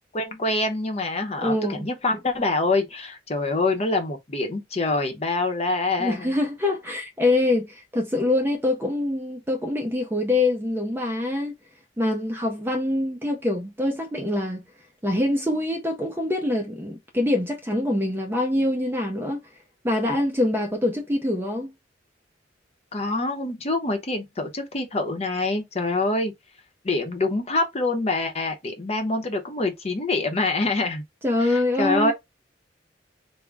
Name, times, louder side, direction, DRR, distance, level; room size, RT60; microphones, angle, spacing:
voice 1, 0.1-6.3 22.9-26.3 26.8-31.0 31.4-32.1, left 2 dB, 35° left, 0.7 m, -25 dB
voice 2, 1.4-1.9 6.0-11.5 12.0-14.6 15.0-19.4 19.8-21.7 31.2-32.1, left 1 dB, 10° right, 0.5 m, -24 dB
3.6 x 2.1 x 3.4 m
head